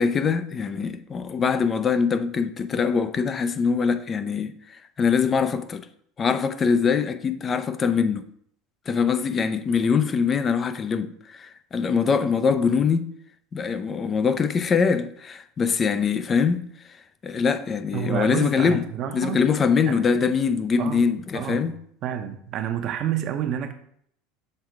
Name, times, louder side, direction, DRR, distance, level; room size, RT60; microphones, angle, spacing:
voice 1, 0.0-5.9 6.2-8.3 8.9-13.1 13.5-16.7 17.2-18.8 19.1-21.7, left 6 dB, 25° left, 0.5 m, -23 dB
voice 2, 17.9-19.4 19.9-20.0 20.8-21.0 21.3-21.7 22.0-23.7, right 10 dB, 45° right, 0.7 m, -29 dB
6.6 x 3.6 x 4.6 m
supercardioid pair, 125°, 0 cm